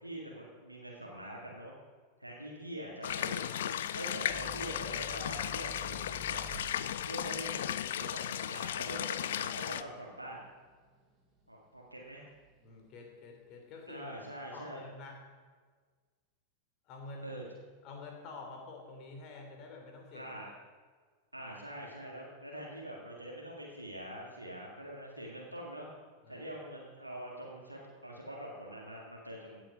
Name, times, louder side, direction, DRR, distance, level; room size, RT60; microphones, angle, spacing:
voice 1, 0.0-1.7 2.2-6.5 7.1-10.4 11.5-12.2 13.9-14.8 17.2-17.4 20.1-20.5 21.3-25.9 26.3-29.6, right 1 dB, 85° right, -2 dB, 1.8 m, -44 dB
sound 1, 3.0-9.8, left 10 dB, 60° left, 0.4 m, -35 dB
sound 2, 4.3-11.6 12.0-12.7, left 2 dB, 15° right, 4.2 m, -50 dB
voice 2, 12.6-14.1 14.5-15.2 16.9-17.4 17.8-20.3 26.2-26.5, left 3 dB, 40° left, 2 dB, 3.0 m, -48 dB
16.0 x 8.8 x 5.0 m, 1.5 s
figure-of-eight pair, 90°, 0 cm